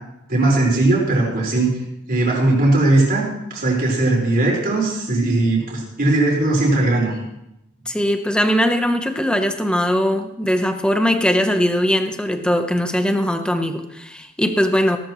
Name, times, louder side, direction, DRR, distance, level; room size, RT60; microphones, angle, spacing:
voice 1, 0.3-1.7 2.1-3.3 3.5-7.2, right 2 dB, 45° right, -4 dB, 4.9 m, -18 dB
voice 2, 7.9-15.0, equal, 5° left, 6 dB, 0.9 m, -20 dB
18.0 x 12.5 x 3.1 m, 0.88 s
head